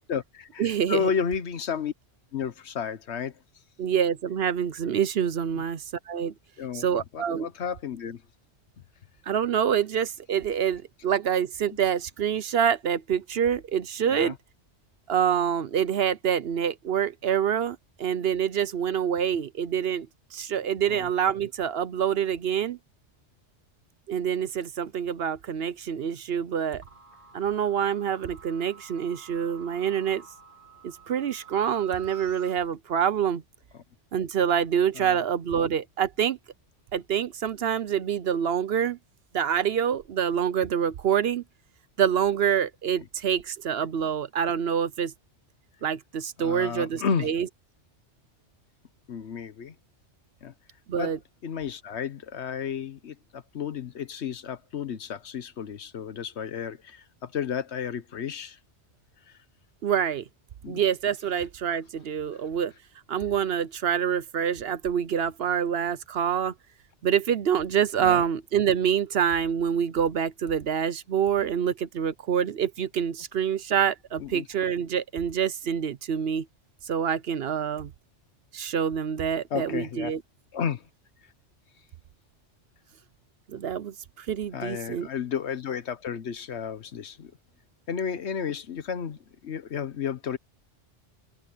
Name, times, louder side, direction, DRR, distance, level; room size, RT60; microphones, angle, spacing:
voice 1, 0.1-1.9 2.3-3.3 5.5-5.6 6.6-8.2 14.0-14.4 20.9-21.1 34.9-35.2 46.4-47.3 49.1-49.7 50.4-50.5 51.0-51.1 51.4-58.6 60.6-60.8 68.0-68.2 74.2-74.5 79.5-80.1 80.5-80.9 84.5-87.3 87.9-90.4, left 7 dB, 70° left, 1.2 m, -32 dB
voice 2, 0.6-1.1 3.8-6.3 6.7-7.5 9.3-14.3 15.1-20.1 20.3-22.8 24.1-26.8 27.3-30.2 30.8-33.4 34.1-36.4 36.9-39.0 39.3-41.4 42.0-45.1 45.8-47.5 50.9-51.2 59.8-60.2 60.7-62.7 63.1-66.5 67.0-76.5 76.9-77.9 78.5-80.2 83.5-85.1, right 8 dB, 60° right, 0.9 m, -26 dB
sound 1, 26.8-32.6, right 6 dB, 45° right, 1.8 m, -49 dB
omnidirectional pair, 1.2 m